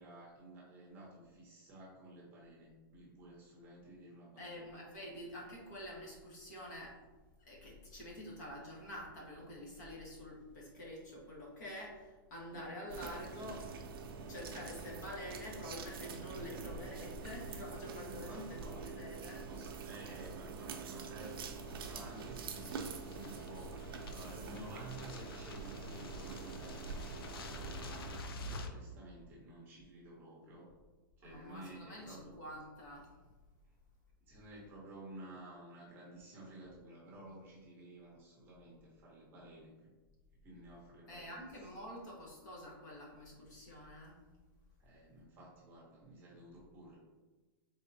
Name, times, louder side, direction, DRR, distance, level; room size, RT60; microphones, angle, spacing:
voice 1, 0.0-4.7 12.5-12.8 14.6-14.7 16.3-16.6 18.1-18.9 19.5-23.8 24.1-30.7 31.2-32.3 34.3-39.9 40.4-41.3 44.8-47.0, right 1 dB, 15° right, -4 dB, 0.8 m, -53 dB
voice 2, 4.4-7.0 7.4-13.7 14.3-19.5 31.2-33.1 41.1-44.2, left 1 dB, 50° left, -3 dB, 1.4 m, -47 dB
sound 1, 12.9-28.2, right 4 dB, 80° right, 0.5 m, -45 dB
sound 2, 21.2-28.7, left 2 dB, 85° left, 0.5 m, -50 dB
4.1 x 3.6 x 2.7 m, 1.2 s
supercardioid pair, 170°, 12 cm